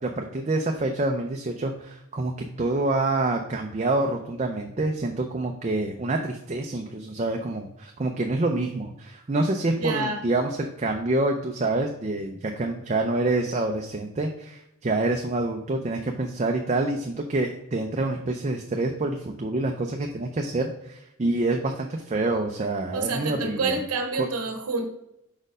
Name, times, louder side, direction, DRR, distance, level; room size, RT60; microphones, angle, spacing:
voice 1, 0.0-2.3 2.6-23.8 24.2-24.3, right 2 dB, 30° right, 3 dB, 0.4 m, -27 dB
voice 2, 9.8-10.2 22.9-24.9, right 3 dB, 85° right, 5 dB, 0.9 m, -28 dB
5.2 x 4.3 x 4.9 m, 0.84 s
head